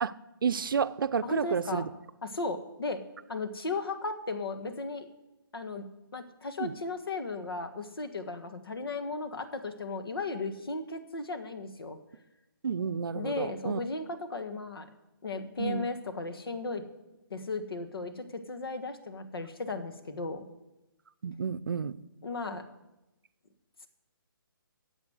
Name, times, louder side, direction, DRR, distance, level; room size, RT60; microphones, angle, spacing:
voice 1, 0.4-1.9 6.6-6.7 12.6-13.8 15.6-15.9 21.2-22.0, right 6 dB, 65° right, 15 dB, 0.6 m, -30 dB
voice 2, 1.2-1.9 2.2-3.0 3.3-5.1 5.5-5.8 6.1-12.0 13.1-14.9 15.2-16.8 17.3-20.4 22.2-22.6, left 3 dB, 85° left, 8 dB, 1.5 m, -36 dB
10.0 x 7.4 x 7.8 m, 0.99 s
hypercardioid pair, 175°, 12 cm